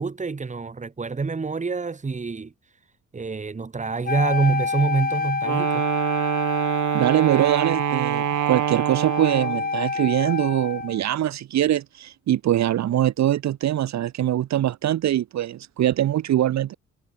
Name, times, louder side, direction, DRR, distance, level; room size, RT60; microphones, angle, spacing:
voice 1, 0.0-2.5 3.1-5.9, right 4 dB, 25° right, 1.9 m, -26 dB
Wind instrument woodwind instrument, 4.0-11.0, left 4 dB, 30° left, 3.4 m, -28 dB
Wind instrument woodwind instrument 2, 5.4-9.8, right 16 dB, 85° right, 2.0 m, -25 dB
voice 2, 6.9-16.7, right 12 dB, 65° right, 1.1 m, -23 dB
cardioid pair, 90°, 30 cm